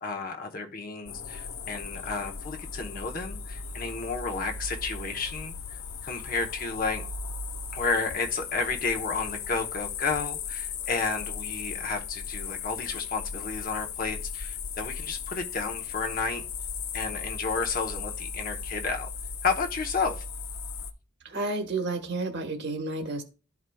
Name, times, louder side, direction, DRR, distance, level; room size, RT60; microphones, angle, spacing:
voice 1, 0.0-5.5 6.0-7.0 7.7-16.4 16.9-19.1 19.4-20.2, left 4 dB, 45° left, 0.9 m, -31 dB
sound 1, 1.1-20.9, left 6 dB, 80° left, 0.7 m, -37 dB
voice 2, 21.2-23.2, right 2 dB, 55° right, 1.3 m, -31 dB
12.5 x 4.8 x 2.3 m
head